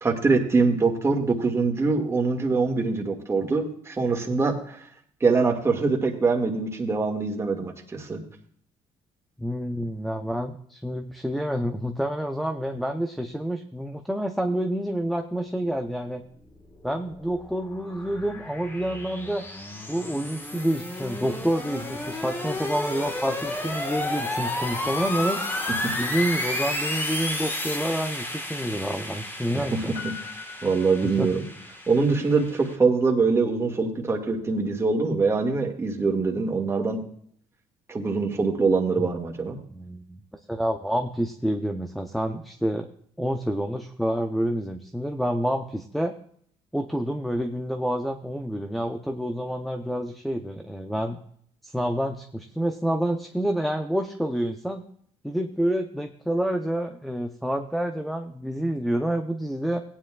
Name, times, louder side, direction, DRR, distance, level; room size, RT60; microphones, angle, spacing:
voice 1, 0.0-4.8 5.2-8.2 29.5-30.2 30.6-31.4 31.9-37.0 37.9-39.6, right 4 dB, 25° right, 1 dB, 2.0 m, -24 dB
voice 2, 9.4-16.2 16.8-19.4 19.9-25.4 26.0-29.9 31.2-31.3 39.0-39.1 39.7-40.2 40.5-42.9 43.2-46.1 46.7-51.2 51.6-54.8 55.2-59.8, equal, ahead, 4 dB, 0.7 m, -28 dB
sound 1, 16.7-32.7, left 1 dB, 20° left, 1.5 m, -32 dB
Piano, 29.9-31.7 32.0-32.1, left 7 dB, 50° left, 5.1 m, -42 dB
17.0 x 9.9 x 2.4 m, 0.63 s
cardioid pair, 110°, 12 cm